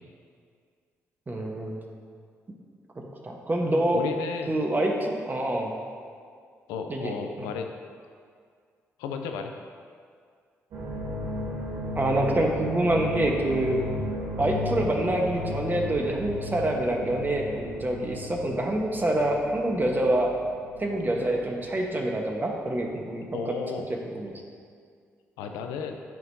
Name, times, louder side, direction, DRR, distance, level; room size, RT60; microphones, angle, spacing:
voice 1, 1.3-1.8 3.0-4.0 4.5-5.7 6.9-7.5 12.0-13.8 14.4-20.3 20.8-23.6 24.1-24.3, right 1 dB, 30° right, 1 dB, 1.2 m, -26 dB
voice 2, 3.9-4.5 6.7-7.7 9.0-9.5 23.3-23.9 25.4-26.0, left 6 dB, 85° left, 5 dB, 0.4 m, -33 dB
sound 1, 10.7-22.8 23.1-23.5, left 2 dB, 70° right, 1.3 m, -35 dB
10.5 x 4.4 x 2.7 m, 2.1 s
hypercardioid pair, 50°, 6 cm